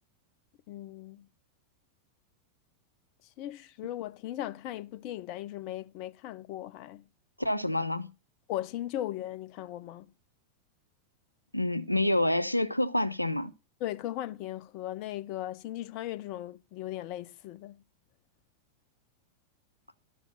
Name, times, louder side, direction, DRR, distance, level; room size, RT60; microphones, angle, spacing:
voice 1, 0.7-1.3 3.4-7.0 8.5-10.1 13.8-17.8, left 13 dB, 45° left, 0.7 m, -38 dB
voice 2, 7.4-8.1 11.5-13.5, left 1 dB, 90° left, 0.7 m, -27 dB
13.0 x 7.2 x 5.7 m
figure-of-eight pair, 90°, 0 cm